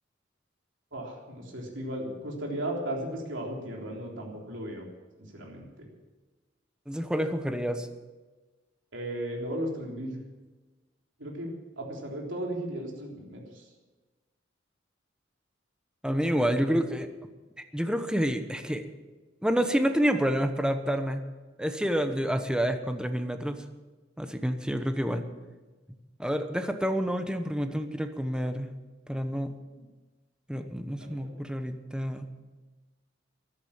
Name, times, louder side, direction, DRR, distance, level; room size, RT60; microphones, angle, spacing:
voice 1, 0.9-4.8 5.3-5.9 8.9-10.2 11.2-13.6 30.9-31.4, right 1 dB, 70° right, -1 dB, 3.7 m, -36 dB
voice 2, 6.9-7.9 16.0-17.1 17.7-18.8 19.4-21.2 21.6-23.6 24.2-25.3 26.2-28.7 29.1-29.5 30.5-32.3, equal, 5° right, 7 dB, 1.0 m, -28 dB
14.5 x 11.5 x 7.3 m, 1.2 s
head